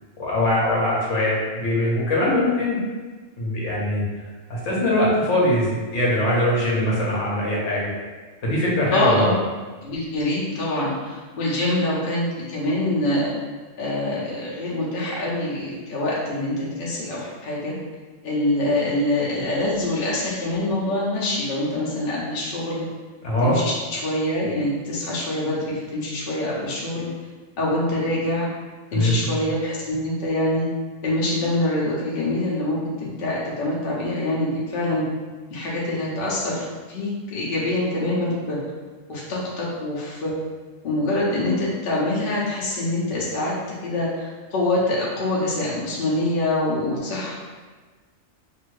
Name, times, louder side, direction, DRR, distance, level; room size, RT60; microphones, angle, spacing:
voice 1, 0.2-2.8 3.4-4.0 4.5-7.9 8.4-9.3 23.2-23.6 28.9-29.1, left 1 dB, 70° left, -5 dB, 1.2 m, -22 dB
voice 2, 8.9-9.4 9.8-13.3 13.8-17.7 18.2-22.9 23.4-27.1 27.6-28.5 28.9-30.7 31.0-35.0 35.5-38.6 39.1-40.3 40.8-47.3, left 1 dB, 50° left, -6 dB, 0.8 m, -25 dB
2.6 x 2.6 x 3.1 m, 1.4 s
omnidirectional pair, 1.4 m